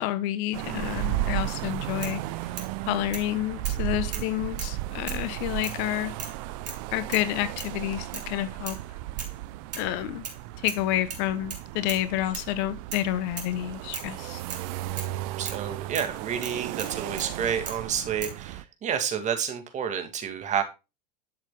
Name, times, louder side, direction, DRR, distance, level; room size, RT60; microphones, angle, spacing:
voice 1, 0.0-2.2 2.9-6.1 6.9-8.8 9.8-10.3 10.6-14.4, left 14 dB, 55° left, 1.1 m, -29 dB
sound 1, 0.5-18.6, right 16 dB, 55° right, 0.6 m, -35 dB
sound 2, 1.5-1.6 2.0-2.7 3.1-3.3 3.6-3.8 4.1-4.8 5.1-5.3 5.6-5.8 6.2-6.4 6.7-6.8 7.1-7.3 7.6-7.8 8.1-8.3 8.7-8.8 9.2-9.4 9.7-10.4 10.7-10.8 11.1-12.1 12.3-12.5 12.9-13.1 13.4-13.5 13.9-14.1 14.5-14.7 15.0-15.2 15.4-15.6 15.9-16.1 16.4-17.3 17.7-17.8 18.2-18.4, right 6 dB, 80° right, 2.7 m, -38 dB
voice 2, 15.4-20.6, right 8 dB, 35° right, 2.2 m, -30 dB
11.0 x 7.5 x 2.3 m
hypercardioid pair, 85°, 21 cm